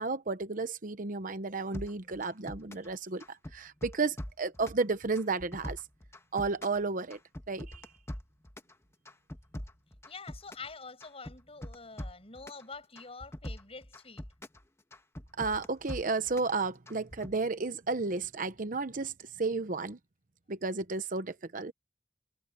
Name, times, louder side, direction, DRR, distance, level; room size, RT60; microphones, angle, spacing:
voice 1, 0.0-5.8 6.3-7.2 7.5-7.9 15.4-20.0 20.5-21.7, right 3 dB, 50° right, 0.9 m, -33 dB
sound 1, 1.7-2.9 3.2-4.8 5.1-6.8 7.1-8.7 9.0-10.7 11.0-12.6 13.0-14.6 14.9-16.5 16.9-17.3, left 1 dB, 15° left, 1.3 m, -43 dB
voice 2, 10.1-14.2, left 4 dB, 35° left, 7.2 m, -46 dB
head